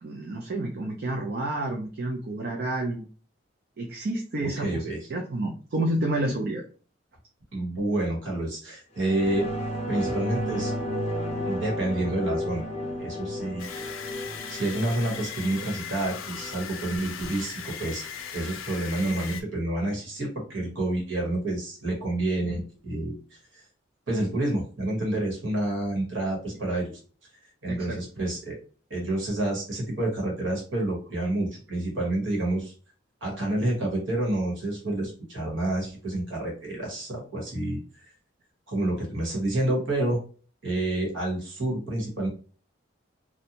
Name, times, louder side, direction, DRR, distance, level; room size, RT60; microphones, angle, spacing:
voice 1, 0.0-3.1 3.8-4.8 5.1-6.6 27.7-28.0, right 1 dB, 50° right, 0 dB, 0.4 m, -29 dB
voice 2, 4.4-5.0 7.5-9.5 9.9-10.7 11.4-12.6 13.0-13.7 13.9-14.0 14.5-23.1 23.5-23.6 24.1-26.9 27.6-28.6 28.9-32.7 33.2-37.8 38.7-40.2 40.6-42.3, right 1 dB, 75° right, -1 dB, 1.2 m, -28 dB
sound 1, 9.0-18.0 18.3-18.4, equal, 30° left, 0.5 m, -33 dB
sound 2, 13.6-19.4, left 7 dB, 90° left, 0.4 m, -38 dB
2.5 x 2.2 x 2.8 m, 0.39 s
head